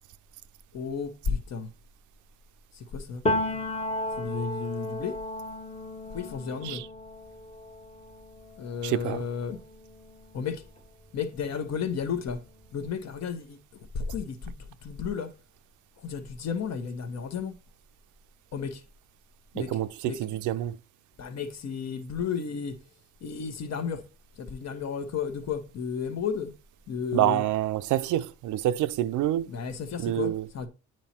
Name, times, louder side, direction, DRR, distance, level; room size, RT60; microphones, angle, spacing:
voice 1, 0.7-1.7 2.7-3.2 4.1-5.2 6.1-6.8 8.6-9.6 10.3-10.6 11.1-12.4 12.7-14.6 14.8-15.3 16.0-17.6 18.5-18.8 19.5-19.7 20.0-20.4 21.2-22.8 23.2-24.0 24.4-26.5 26.9-27.4 29.5-30.7, left 6 dB, 60° left, 1.1 m, -33 dB
Piano, 3.3-10.9 11.2-12.8, left 1 dB, 20° left, 0.9 m, -35 dB
voice 2, 8.8-9.2 19.6-20.8 27.1-29.5 30.0-30.5, right 13 dB, 80° right, 0.5 m, -27 dB
8.7 x 3.1 x 4.3 m
cardioid pair, 90°, 30 cm